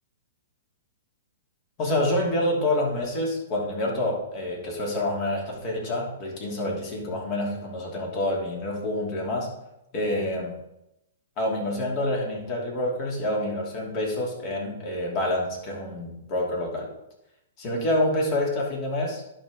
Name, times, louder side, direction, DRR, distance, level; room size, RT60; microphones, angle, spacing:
voice 1, 1.8-9.5 9.9-10.5 11.4-16.9 17.6-19.2, left 1 dB, 40° left, -1 dB, 3.0 m, -27 dB
11.0 x 5.5 x 3.8 m, 0.87 s
hypercardioid pair, 125°, 0 cm